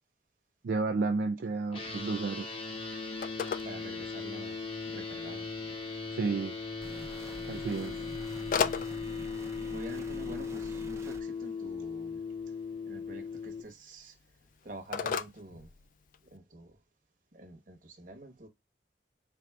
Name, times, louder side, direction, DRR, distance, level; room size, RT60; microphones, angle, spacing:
voice 1, 0.6-2.5 6.1-6.6 7.5-8.0, right 4 dB, 70° right, 0.4 m, -31 dB
sound 1, 1.7-13.6, left 4 dB, 30° left, 1.0 m, -38 dB
Telephone, 1.9-16.4, left 6 dB, 45° left, 0.3 m, -41 dB
voice 2, 3.6-5.8 9.7-12.5 12.9-14.2 14.6-15.7 16.2-16.8 17.3-18.5, right 1 dB, 45° right, 1.0 m, -47 dB
sound 2, 6.8-11.2, right 1 dB, 15° right, 0.5 m, -47 dB
4.6 x 3.6 x 2.3 m
head